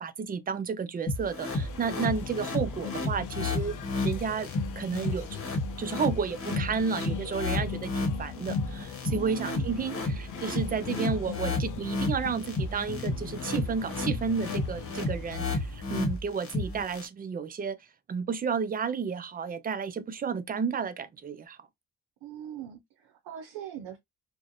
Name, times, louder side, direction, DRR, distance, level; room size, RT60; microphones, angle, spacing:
voice 1, 0.0-4.5 4.8-5.4 5.8-17.8 18.1-21.6, right 6 dB, 25° right, 0.4 m, -32 dB
sound 1, 1.1-17.1, left 2 dB, 35° left, 1.0 m, -32 dB
sound 2, 1.5-16.2, left 9 dB, 55° left, 0.6 m, -41 dB
voice 2, 9.1-9.7 22.2-24.0, right 11 dB, 85° right, 0.6 m, -41 dB
2.5 x 2.1 x 2.5 m
supercardioid pair, 55°, 37 cm